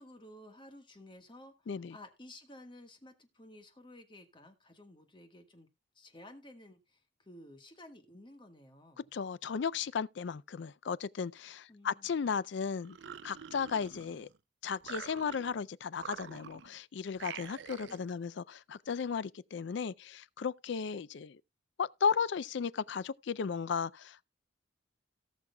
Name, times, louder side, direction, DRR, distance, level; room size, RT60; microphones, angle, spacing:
voice 1, 0.0-5.7 5.9-9.1 11.7-12.1 17.8-18.4, left 1 dB, 25° left, 1.4 m, -54 dB
voice 2, 1.7-2.0 9.1-13.0 13.2-14.3 14.6-21.4 21.8-24.3, left 6 dB, 60° left, 0.4 m, -35 dB
sound 1, 12.8-14.4 14.8-15.6 16.0-16.8 17.2-18.1, right 7 dB, 60° right, 0.4 m, -46 dB
18.0 x 6.2 x 2.2 m
head